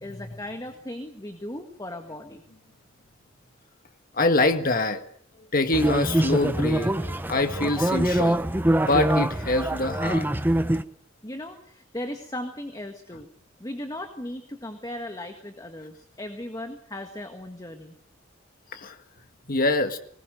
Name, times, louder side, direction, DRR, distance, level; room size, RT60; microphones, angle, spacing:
voice 1, 0.0-2.4 11.2-13.3 13.6-18.0, left 1 dB, 20° left, 5 dB, 1.7 m, -37 dB
voice 2, 4.2-5.0 5.5-10.3 18.7-19.0 19.5-20.0, left 2 dB, 45° left, 7 dB, 1.8 m, -25 dB
sound 1, 5.7-10.8, right 1 dB, 10° right, 0.9 m, -24 dB
20.5 x 20.0 x 7.9 m, 0.62 s
head